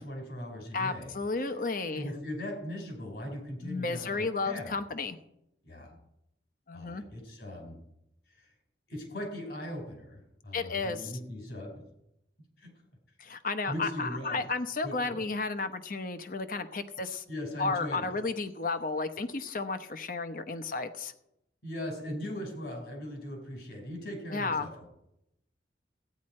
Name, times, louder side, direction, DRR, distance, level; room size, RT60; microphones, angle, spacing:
voice 1, 0.0-1.1 1.9-4.7 5.6-6.0 6.7-7.8 8.4-8.5 8.9-11.8 12.6-12.7 13.7-14.4 14.8-15.2 17.3-18.2 21.6-24.9, left 1 dB, 65° left, 1 dB, 4.6 m, -39 dB
voice 2, 0.7-2.1 3.6-5.2 6.7-7.0 10.5-11.1 13.2-17.2 17.6-21.1 24.3-24.7, left 3 dB, 50° left, 9 dB, 0.9 m, -33 dB
14.5 x 9.6 x 4.4 m, 0.81 s
head